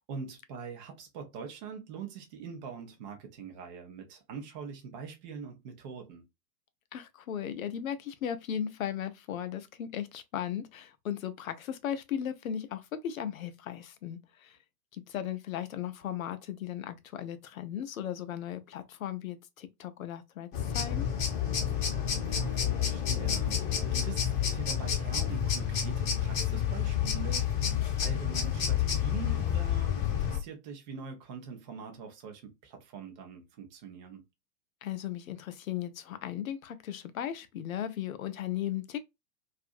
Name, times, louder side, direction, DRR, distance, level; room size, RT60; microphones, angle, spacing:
voice 1, 0.0-6.2 22.2-27.7 28.0-34.2, right 5 dB, 30° right, 0.5 m, -43 dB
voice 2, 6.9-14.6 14.9-21.1 34.8-39.0, left 10 dB, 55° left, 0.6 m, -36 dB
sound 1, 20.5-30.4, left 9 dB, 30° left, 0.8 m, -29 dB
2.6 x 2.5 x 2.4 m
figure-of-eight pair, 110°, 50 cm